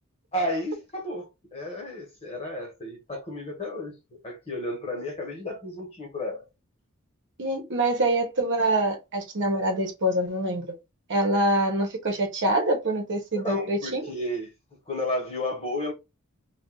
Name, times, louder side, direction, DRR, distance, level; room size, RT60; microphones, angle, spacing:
voice 1, 0.3-4.0 4.2-6.5 13.4-14.5 14.9-15.9, left 1 dB, 30° left, 1.2 m, -32 dB
voice 2, 7.4-10.7 11.1-14.0, right 1 dB, 60° right, 0.9 m, -25 dB
2.5 x 2.3 x 3.7 m
head